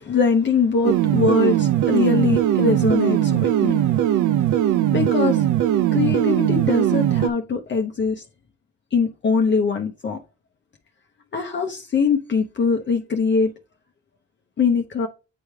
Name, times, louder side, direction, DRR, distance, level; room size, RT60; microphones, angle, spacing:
voice 1, 0.0-3.9 4.9-5.4 5.9-8.2 8.9-10.2 11.3-13.5 14.6-15.1, left 5 dB, 40° left, 0.8 m, -22 dB
sound 1, 0.8-7.3, right 12 dB, 80° right, 0.5 m, -20 dB
8.8 x 3.2 x 3.4 m
cardioid pair, 90°, 30 cm